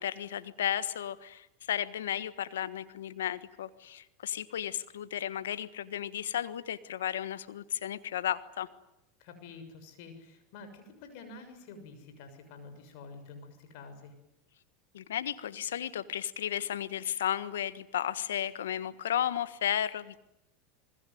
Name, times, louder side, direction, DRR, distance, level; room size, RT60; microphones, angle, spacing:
voice 1, 0.0-8.7 14.9-20.2, left 10 dB, 85° left, 14 dB, 1.4 m, -34 dB
voice 2, 9.2-14.1, left 4 dB, 65° left, 8 dB, 6.8 m, -48 dB
27.5 x 20.5 x 9.4 m, 0.85 s
hypercardioid pair, 100°, 0 cm